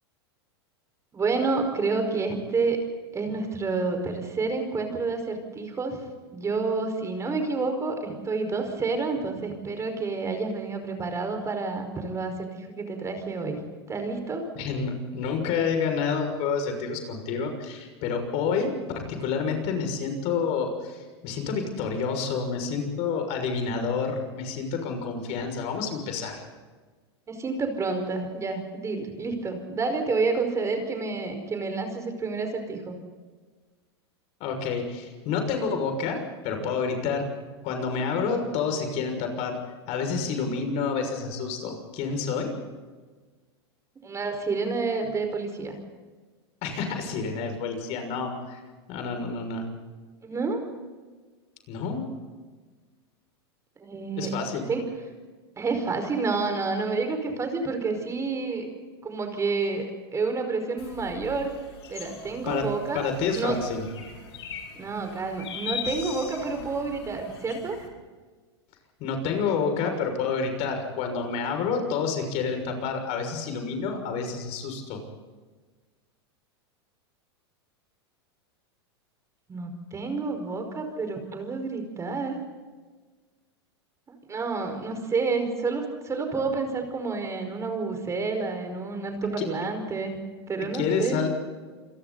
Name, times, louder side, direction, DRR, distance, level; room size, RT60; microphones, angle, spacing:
voice 1, 1.1-2.8 3.1-6.0 6.3-14.4 25.3-25.4 27.3-33.0 44.0-45.8 50.2-50.6 53.8-54.3 54.7-54.8 55.6-58.7 59.0-61.5 61.9-63.6 64.7-67.8 79.5-82.4 84.1-90.2 90.5-91.3, right 4 dB, 20° right, 6 dB, 5.2 m, -29 dB
voice 2, 14.5-26.4 34.4-37.3 37.6-39.6 39.9-42.5 46.6-48.6 48.9-49.7 51.7-52.1 54.2-54.7 62.5-62.7 62.9-63.9 69.0-75.0 89.4-89.5 90.7-91.3, left 5 dB, 50° left, 5 dB, 6.4 m, -29 dB
sound 1, 60.8-67.9, left 7 dB, 75° left, 5.7 m, -40 dB
28.5 x 22.5 x 4.2 m, 1.4 s
hypercardioid pair, 105°, 14 cm